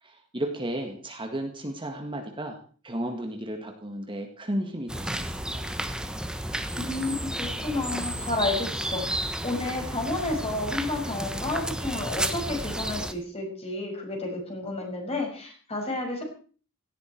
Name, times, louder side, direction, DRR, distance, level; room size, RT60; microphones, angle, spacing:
voice 1, 0.0-2.6 2.8-5.7, right 1 dB, 25° right, 3 dB, 1.9 m, -34 dB
sound 1, 4.9-13.1, right 1 dB, 5° right, 1.2 m, -32 dB
voice 2, 6.9-9.0 9.4-16.2, left 2 dB, 30° left, 2 dB, 6.0 m, -31 dB
17.5 x 14.5 x 4.6 m, 0.41 s
head